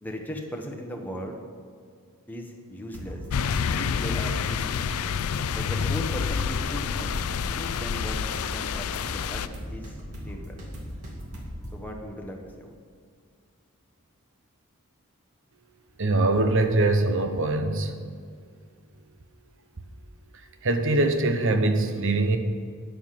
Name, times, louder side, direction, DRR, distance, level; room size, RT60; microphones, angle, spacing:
voice 1, 0.0-1.4 2.3-3.2 3.8-4.6 5.5-7.2 7.5-9.8 10.2-10.6 11.7-12.7, equal, 10° left, 1 dB, 1.1 m, -37 dB
sound 1, 2.9-11.8, equal, 85° right, 2.3 m, -38 dB
sound 2, 3.3-9.5, left 7 dB, 80° left, 0.4 m, -28 dB
voice 2, 16.0-17.9 20.6-22.4, right 2 dB, 60° right, 7 dB, 0.9 m, -23 dB
9.9 x 7.1 x 5.7 m, 2.1 s
head